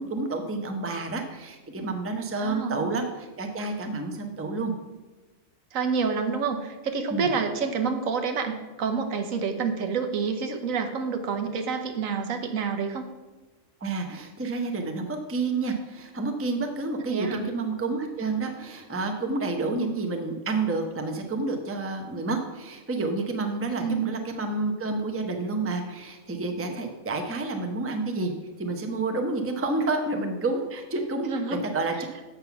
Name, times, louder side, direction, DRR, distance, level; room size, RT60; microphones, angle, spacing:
voice 1, 0.0-4.7 7.1-7.3 13.8-28.3 28.6-31.9, right 3 dB, 15° right, 4 dB, 0.6 m, -29 dB
voice 2, 2.4-2.9 5.7-13.1 17.1-17.5 23.8-24.1 31.2-31.6, right 5 dB, 75° right, 6 dB, 1.3 m, -28 dB
7.5 x 5.7 x 5.8 m, 1.2 s
omnidirectional pair, 1.4 m